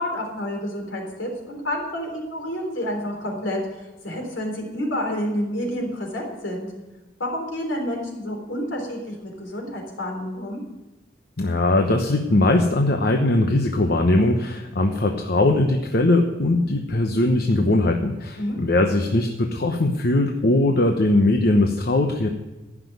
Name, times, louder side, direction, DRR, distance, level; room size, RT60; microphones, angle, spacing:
voice 1, 0.0-6.7 7.2-10.6 18.4-18.6, left 1 dB, 75° left, 2 dB, 3.8 m, -29 dB
voice 2, 11.4-22.3, left 2 dB, 55° left, 4 dB, 0.9 m, -20 dB
15.5 x 6.1 x 9.2 m, 1.1 s
head